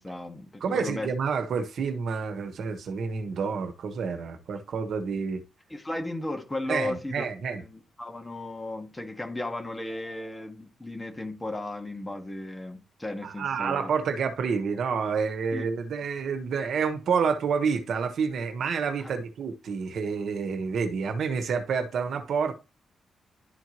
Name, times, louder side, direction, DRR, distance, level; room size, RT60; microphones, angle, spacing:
voice 1, 0.0-1.1 5.7-7.3 7.6-13.9 15.5-15.7 19.0-19.1, left 1 dB, 10° left, 1.6 m, -35 dB
voice 2, 0.6-5.4 6.7-7.6 13.2-22.5, right 5 dB, 65° right, 1.2 m, -29 dB
11.5 x 4.4 x 3.0 m
wide cardioid pair, 140°, 0 cm